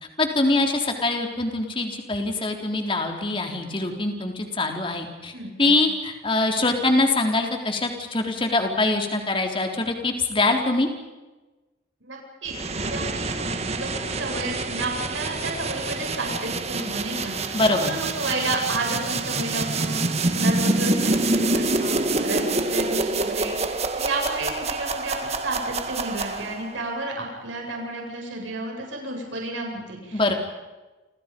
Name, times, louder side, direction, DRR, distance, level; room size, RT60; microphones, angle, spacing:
voice 1, 0.2-5.3 5.6-10.9 17.5-17.9 30.1-30.3, left 2 dB, 25° left, 3 dB, 3.8 m, -23 dB
voice 2, 5.3-5.8 12.0-20.0 20.3-30.4, right 2 dB, 85° right, 0 dB, 8.0 m, -31 dB
sound 1, 12.5-26.8, right 2 dB, 35° right, 2.0 m, -26 dB
29.0 x 27.5 x 5.4 m, 1.2 s
head